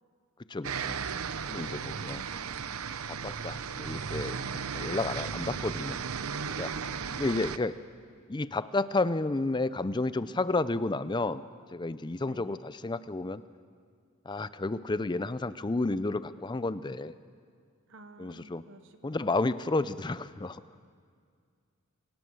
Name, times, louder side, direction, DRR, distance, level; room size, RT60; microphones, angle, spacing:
voice 1, 0.5-1.0 1.5-2.2 3.2-6.0 6.5-6.7 7.2-7.8 8.3-11.4 11.7-13.4 14.3-17.1 18.2-18.6 19.0-20.6, left 2 dB, 20° left, 15 dB, 0.5 m, -31 dB
sound 1, 0.6-7.6, right 6 dB, 75° right, 0.7 m, -35 dB
voice 2, 1.9-2.6 6.9-7.8 12.2-12.7 17.9-19.3, right 2 dB, 60° right, 9 dB, 1.1 m, -52 dB
26.0 x 18.5 x 6.4 m, 2.2 s
head